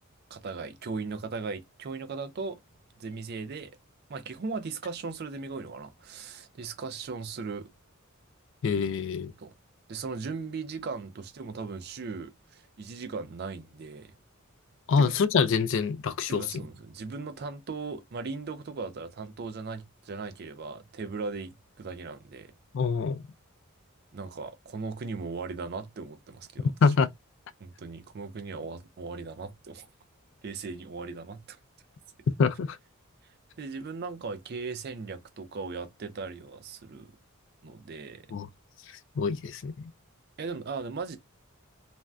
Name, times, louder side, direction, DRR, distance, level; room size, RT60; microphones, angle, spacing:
voice 1, 0.3-2.6 3.0-3.8 4.1-7.7 9.4-9.5 9.9-14.1 15.0-15.1 16.3-22.5 24.1-26.7 27.6-29.9 30.4-31.6 33.6-37.1 37.6-38.3 40.4-41.2, right 4 dB, 50° right, 0.4 m, -38 dB
voice 2, 8.6-9.3 14.9-16.6 22.7-23.2 26.8-27.1 32.4-32.8 38.3-38.5 39.2-39.9, left 5 dB, 60° left, 0.3 m, -25 dB
2.5 x 2.2 x 3.3 m
head